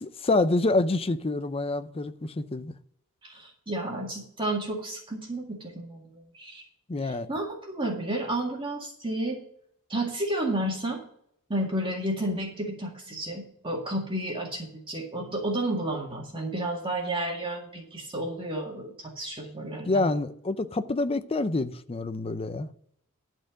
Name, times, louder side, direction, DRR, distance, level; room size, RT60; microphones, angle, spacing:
voice 1, 0.0-2.7 6.9-7.3 19.9-22.7, left 2 dB, 25° left, 0.5 m, -27 dB
voice 2, 3.2-6.6 7.0-9.4 9.9-11.0 11.5-20.0, right 1 dB, 25° right, 1.9 m, -31 dB
12.0 x 4.5 x 7.4 m
head